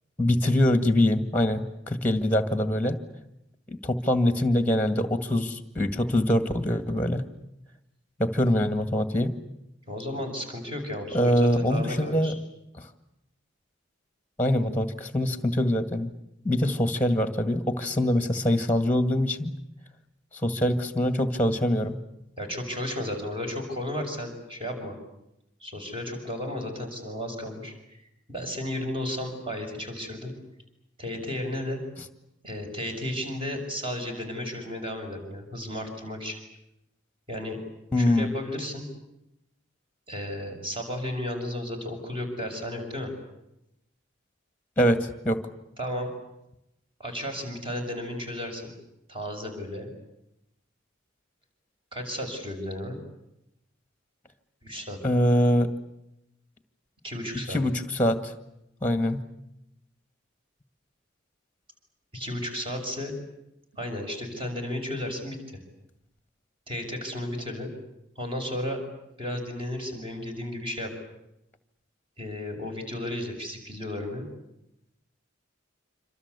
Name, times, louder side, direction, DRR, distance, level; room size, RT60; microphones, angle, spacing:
voice 1, 0.2-3.0 3.7-7.2 8.2-9.3 11.1-12.4 12.8-12.9 14.4-16.1 16.4-19.5 20.4-22.0 37.9-38.3 44.8-45.4 55.0-55.7 57.5-58.3 58.8-59.2, left 1 dB, 10° left, 10 dB, 1.9 m, -24 dB
voice 2, 9.9-12.3 22.4-24.9 25.6-28.0 28.3-30.3 31.0-31.8 32.4-36.4 37.3-37.6 38.0-38.8 40.1-43.1 45.8-46.1 47.0-48.7 49.1-49.9 51.9-53.0 54.6-55.0 57.0-57.6 62.1-63.1 63.7-65.6 66.7-67.7 68.2-68.8 69.2-70.9 72.2-74.3, left 1 dB, 25° right, 4 dB, 6.7 m, -33 dB
27.5 x 26.0 x 8.3 m, 0.84 s
head